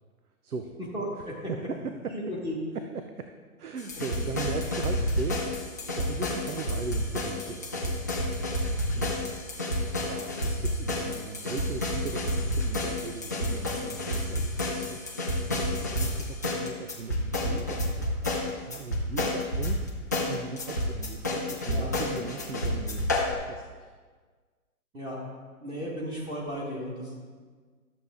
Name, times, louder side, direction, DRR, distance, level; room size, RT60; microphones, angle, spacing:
voice 1, 0.9-1.4 2.1-2.6 21.7-21.9 24.9-25.2 25.6-27.1, equal, 10° right, -4 dB, 1.4 m, -34 dB
voice 2, 1.5-2.1 2.7-3.3 3.6-5.6 6.0-8.1 8.4-9.4 9.9-23.9, right 5 dB, 85° right, 6 dB, 0.8 m, -39 dB
sound 1, 3.8-23.3, left 1 dB, 15° left, 0.4 m, -30 dB
12.0 x 7.1 x 3.5 m, 1.5 s
hypercardioid pair, 140°, 44 cm